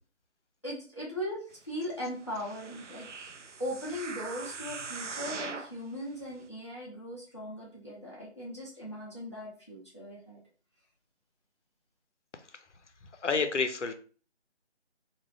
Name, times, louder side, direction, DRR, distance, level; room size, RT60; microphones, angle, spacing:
voice 1, 0.6-10.4, equal, 25° left, -4 dB, 0.6 m, -39 dB
sound 1, 2.2-5.8 6.4-6.5, right 4 dB, 90° right, 0.5 m, -41 dB
voice 2, 13.2-13.9, left 4 dB, 90° left, 8 dB, 0.6 m, -28 dB
2.3 x 2.2 x 3.3 m, 0.39 s
figure-of-eight pair, 160°, 35 cm